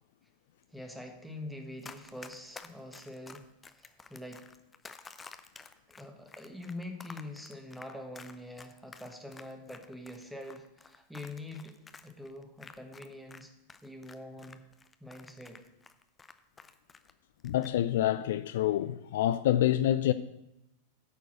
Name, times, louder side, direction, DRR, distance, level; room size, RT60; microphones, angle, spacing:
voice 1, 0.7-4.5 6.0-11.8 12.0-13.5 13.8-14.6 15.0-15.7, left 1 dB, ahead, 1.5 m, -45 dB
Run, 1.8-13.4 13.7-17.1 17.4-17.7, left 4 dB, 15° left, 0.6 m, -50 dB
voice 2, 17.4-20.1, left 12 dB, 55° left, 0.3 m, -27 dB
10.0 x 4.6 x 7.7 m
figure-of-eight pair, 90°, 0 cm